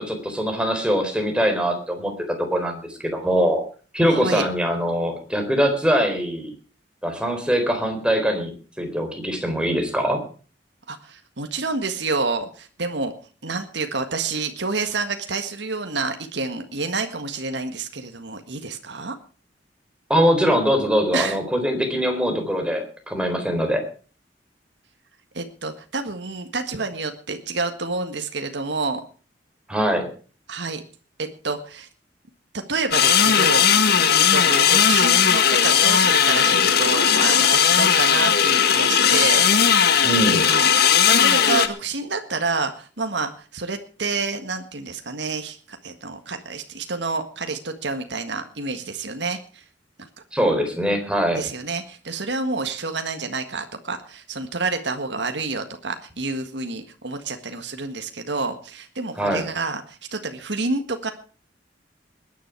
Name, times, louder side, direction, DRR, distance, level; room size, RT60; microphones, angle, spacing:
voice 1, 0.0-3.6 3.9-6.5 7.0-10.2 20.1-23.8 29.7-30.1 40.0-40.5 50.3-51.4 59.2-59.4, equal, 5° right, 4 dB, 4.0 m, -22 dB
voice 2, 4.0-4.5 10.9-13.1 13.4-19.2 21.1-21.4 25.3-29.0 30.5-30.8 31.2-31.9 32.7-33.6 34.0-39.5 40.4-49.6 51.4-61.1, right 3 dB, 70° right, 6 dB, 1.7 m, -28 dB
sound 1, 32.9-41.7, left 8 dB, 60° left, 1.5 m, -17 dB
21.0 x 10.5 x 4.6 m, 0.39 s
head